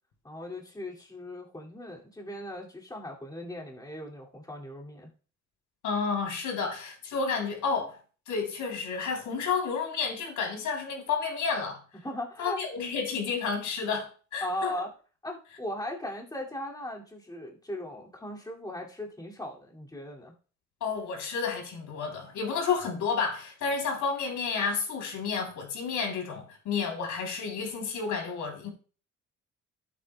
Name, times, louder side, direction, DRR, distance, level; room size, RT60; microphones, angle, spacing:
voice 1, 0.2-5.1 12.0-12.6 14.4-14.9 15.2-20.3, left 1 dB, 10° left, 2.4 m, -38 dB
voice 2, 5.8-8.0 8.3-11.8 12.4-14.7 20.8-28.7, left 5 dB, 75° left, 3.3 m, -31 dB
13.5 x 8.3 x 2.2 m
cardioid pair, 90°, 30 cm